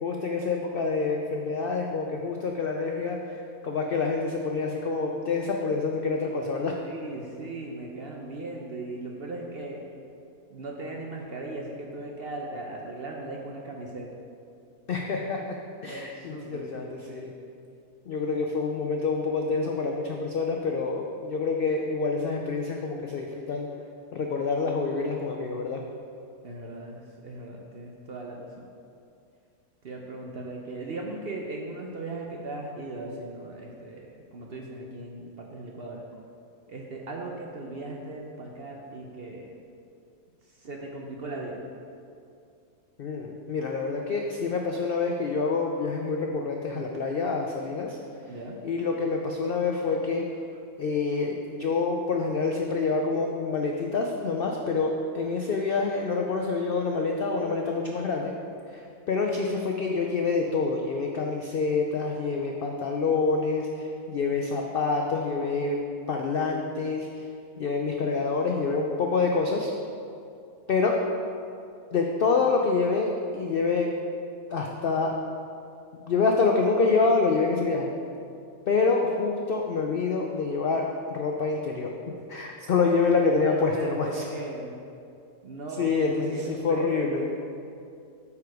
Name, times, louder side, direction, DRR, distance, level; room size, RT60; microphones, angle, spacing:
voice 1, 0.0-6.8 14.9-15.6 15.8-17.3 18.1-23.7 24.1-25.8 43.0-48.0 48.6-50.3 50.8-58.3 58.7-65.8 66.1-67.3 67.6-69.7 70.7-71.0 71.9-73.9 74.5-75.1 76.1-77.9 78.7-81.9 82.3-84.2 85.8-87.3, left 4 dB, 75° left, 1 dB, 0.5 m, -27 dB
voice 2, 6.8-9.8 10.5-14.1 15.9-17.3 26.4-28.7 29.8-36.0 36.7-39.5 40.4-41.7 48.3-48.6 83.4-84.7 85.4-87.1, right 2 dB, 55° right, 0 dB, 0.7 m, -38 dB
8.3 x 4.8 x 4.7 m, 2.5 s
omnidirectional pair, 1.6 m